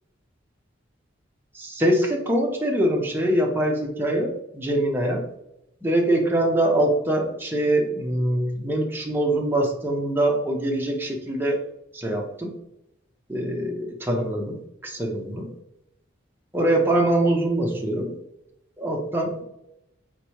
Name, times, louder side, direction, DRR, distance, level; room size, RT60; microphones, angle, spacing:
voice 1, 1.5-5.3 5.8-11.6 11.9-12.5 13.3-15.5 16.5-18.1 18.8-19.4, right 1 dB, 10° right, 0 dB, 0.6 m, -23 dB
4.7 x 3.5 x 2.9 m, 0.82 s
head